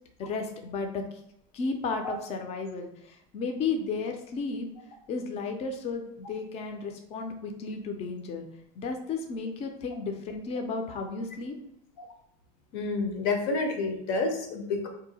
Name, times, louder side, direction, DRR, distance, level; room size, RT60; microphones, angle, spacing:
voice 1, 0.2-1.0 1.5-4.7 5.1-8.5 8.7-11.5, left 4 dB, 35° left, 4 dB, 0.4 m, -33 dB
voice 2, 12.7-14.9, left 3 dB, 65° left, 4 dB, 0.7 m, -29 dB
2.7 x 2.1 x 4.0 m, 0.77 s
cardioid pair, 150°, 20 cm